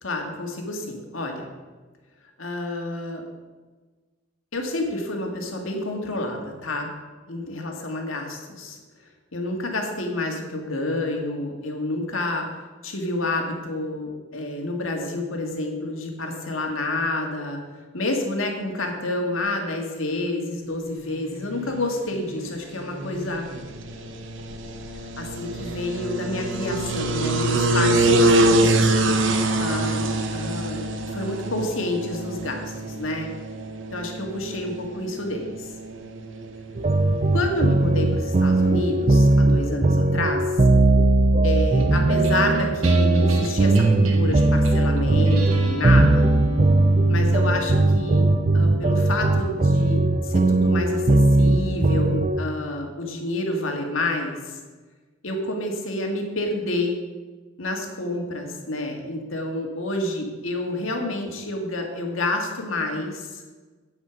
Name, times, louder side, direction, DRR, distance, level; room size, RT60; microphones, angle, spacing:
voice 1, 0.0-1.5 2.4-3.3 4.5-6.9 7.3-8.8 9.3-12.5 12.8-17.6 17.9-23.5 25.2-29.2 29.6-30.8 31.1-33.3 33.9-35.7 37.3-40.6 41.4-46.3 47.1-54.6 55.2-57.0 57.6-63.4, left 2 dB, 80° left, 2 dB, 2.0 m, -29 dB
sound 1, 21.3-39.3, right 2 dB, 65° right, 1.0 m, -26 dB
sound 2, 36.8-52.4, right 2 dB, 35° right, 0.5 m, -19 dB
sound 3, 41.8-52.4, left 1 dB, 85° right, 1.9 m, -36 dB
8.7 x 8.4 x 6.0 m, 1.3 s
head